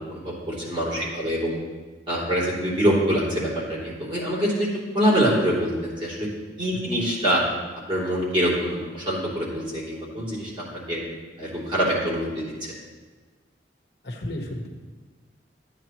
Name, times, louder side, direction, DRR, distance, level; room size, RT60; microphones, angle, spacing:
voice 1, 0.0-1.6 2.1-4.7 4.9-6.3 6.6-7.4 7.9-11.0 11.4-12.7, equal, 30° right, -6 dB, 3.1 m, -25 dB
voice 2, 0.8-1.3 6.7-7.0 11.0-11.2 14.0-14.7, left 1 dB, 65° left, -1 dB, 1.4 m, -35 dB
13.0 x 9.2 x 3.1 m, 1.4 s
head